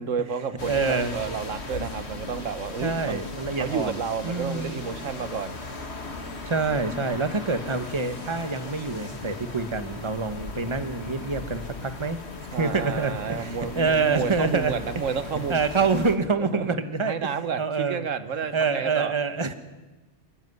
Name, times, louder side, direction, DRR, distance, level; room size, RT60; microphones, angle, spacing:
voice 1, 0.0-3.2 3.5-5.5 12.5-15.6 16.4-16.7 17.0-19.1, right 6 dB, 85° right, 11 dB, 1.5 m, -31 dB
sound 1, 0.6-16.2, left 3 dB, 60° left, 2.2 m, -37 dB
voice 2, 0.7-1.1 2.8-4.8 6.5-12.2 12.5-14.7 15.5-17.3 17.6-18.0 18.5-19.5, right 4 dB, 25° right, 9 dB, 1.4 m, -26 dB
28.5 x 13.5 x 9.5 m, 1.2 s
omnidirectional pair, 1.3 m